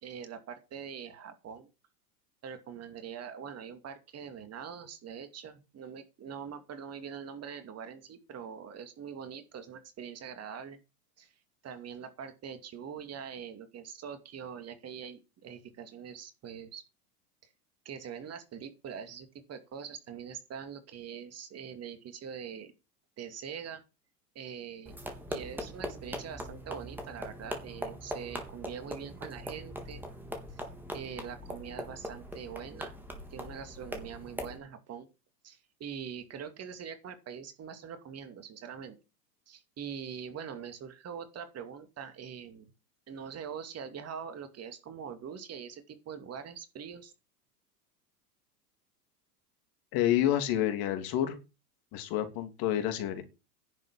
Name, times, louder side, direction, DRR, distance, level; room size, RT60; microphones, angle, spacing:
voice 1, 0.0-1.7 2.4-10.8 11.2-11.3 11.6-16.8 17.8-22.7 23.2-23.8 24.3-25.0 25.3-30.0 30.5-30.6 30.9-32.9 33.3-35.1 35.4-39.0 39.5-42.7 43.1-47.1, right 7 dB, 30° right, 9 dB, 2.5 m, -43 dB
sound 1, 24.9-34.6, equal, 5° right, 3.5 m, -41 dB
voice 2, 49.9-51.4 51.9-53.2, left 12 dB, 45° left, 8 dB, 3.1 m, -29 dB
11.0 x 7.3 x 7.3 m, 0.28 s
hypercardioid pair, 100°, 48 cm